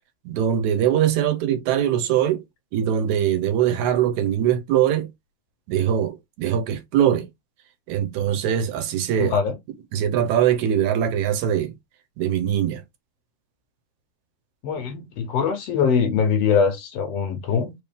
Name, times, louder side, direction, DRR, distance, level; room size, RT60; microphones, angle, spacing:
voice 1, 0.3-2.4 2.7-5.1 5.7-7.3 7.9-9.4 9.9-11.7 12.2-12.8, right 10 dB, 80° right, 2.0 m, -22 dB
voice 2, 9.2-9.5 14.6-17.7, left 6 dB, 70° left, 1.7 m, -22 dB
4.5 x 3.1 x 3.5 m
omnidirectional pair, 3.4 m